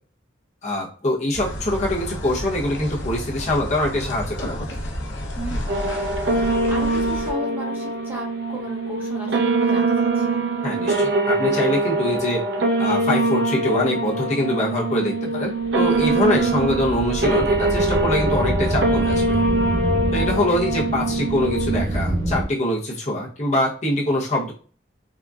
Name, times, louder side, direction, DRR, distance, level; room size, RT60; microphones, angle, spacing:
voice 1, 0.6-4.8 10.6-12.4 12.8-19.4 20.1-24.5, left 1 dB, 35° left, -3 dB, 0.8 m, -24 dB
sound 1, 1.3-7.3, equal, 70° left, 0.7 m, -31 dB
voice 2, 5.4-5.9 6.2-10.4, right 1 dB, 10° right, -2 dB, 0.6 m, -35 dB
sound 2, 5.7-22.0, right 2 dB, 60° right, 0.5 m, -23 dB
sound 3, 15.6-22.5, right 1 dB, 85° right, 0.8 m, -27 dB
3.8 x 2.1 x 2.3 m, 0.40 s
head